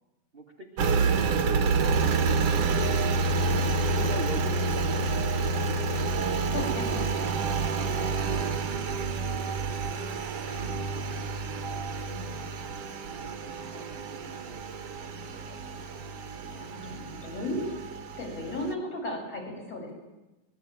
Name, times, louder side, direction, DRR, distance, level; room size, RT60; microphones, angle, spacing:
voice 1, 0.3-6.1 7.8-9.8 10.4-10.6 10.9-11.3 13.0-16.1 16.4-17.3, right 1 dB, 20° right, 1 dB, 1.7 m, -46 dB
Engine, 0.8-18.7, right 4 dB, 55° right, 2.2 m, -28 dB
voice 2, 3.5-3.9 6.5-7.1 10.5-10.8 12.1-12.4 16.5-17.6 18.2-19.9, left 1 dB, 45° left, 0 dB, 8.6 m, -36 dB
25.0 x 21.0 x 9.1 m, 1.0 s
omnidirectional pair, 3.8 m